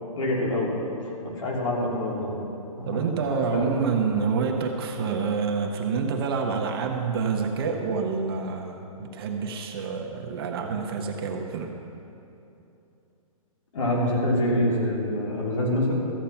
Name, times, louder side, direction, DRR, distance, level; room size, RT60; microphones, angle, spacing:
voice 1, 0.2-0.7 1.2-2.4 2.8-3.0 3.5-3.6 13.7-15.9, left 1 dB, 60° left, -3 dB, 3.2 m, -25 dB
voice 2, 2.9-11.7, right 5 dB, 40° right, 2 dB, 1.1 m, -27 dB
14.0 x 8.3 x 5.8 m, 2.9 s
hypercardioid pair, 165°, 19 cm